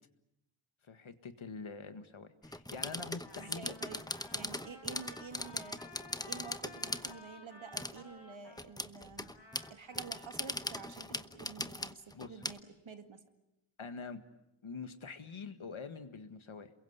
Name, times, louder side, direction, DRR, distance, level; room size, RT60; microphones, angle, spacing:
voice 1, 0.9-3.7 12.1-12.3 13.8-14.2 14.6-16.7, left 4 dB, 70° left, 9 dB, 1.8 m, -45 dB
sound 1, 2.4-7.2 7.7-8.0 8.6-12.6, left 1 dB, 10° left, 0.9 m, -40 dB
Trumpet, 3.2-8.7 9.2-11.1, left 3 dB, 55° left, 5.7 m, -55 dB
voice 2, 3.3-4.1 4.3-9.3 9.7-13.2, right 5 dB, 65° right, 7 dB, 2.2 m, -49 dB
28.0 x 22.5 x 8.1 m, 0.87 s
wide cardioid pair, 75°, 50 cm